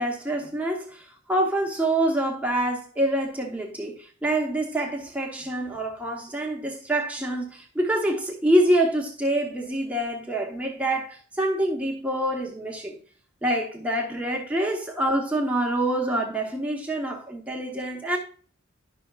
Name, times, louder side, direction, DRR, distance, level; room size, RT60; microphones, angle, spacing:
voice 1, 0.0-13.0 13.4-18.2, right 1 dB, 5° right, 0.9 m, -26 dB
11.0 x 5.6 x 2.3 m
head